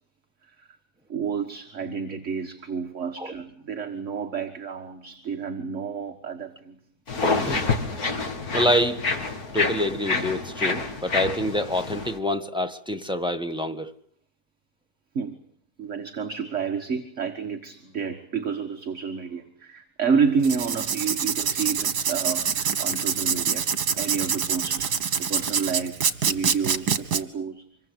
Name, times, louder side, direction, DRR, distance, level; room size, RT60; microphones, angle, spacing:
voice 1, 1.1-6.8 15.1-15.4 15.8-23.7 23.9-24.9 25.2-27.6, right 6 dB, 50° right, 1.9 m, -30 dB
sound 1, 7.1-12.2, left 3 dB, 65° left, 3.0 m, -27 dB
voice 2, 7.2-7.7 8.5-9.0 9.5-13.9, equal, 5° right, 1.4 m, -26 dB
Writing, 20.4-27.2, right 7 dB, 80° right, 2.1 m, -25 dB
25.5 x 23.0 x 8.2 m
omnidirectional pair, 1.7 m